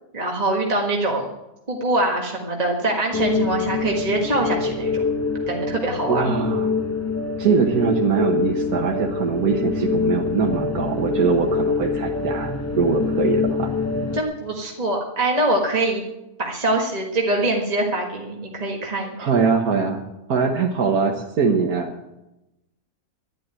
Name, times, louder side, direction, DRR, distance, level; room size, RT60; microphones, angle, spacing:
voice 1, 0.1-1.3 1.7-5.0 5.5-6.3 14.1-16.0 16.4-19.3, right 2 dB, 25° right, 0 dB, 1.7 m, -23 dB
sound 1, 3.1-14.2, left 4 dB, 10° left, 1.0 m, -25 dB
voice 2, 6.1-6.7 7.4-13.7 19.2-20.0 20.3-21.9, right 5 dB, 75° right, 1 dB, 1.7 m, -22 dB
11.5 x 11.0 x 8.9 m, 0.96 s
omnidirectional pair, 1.6 m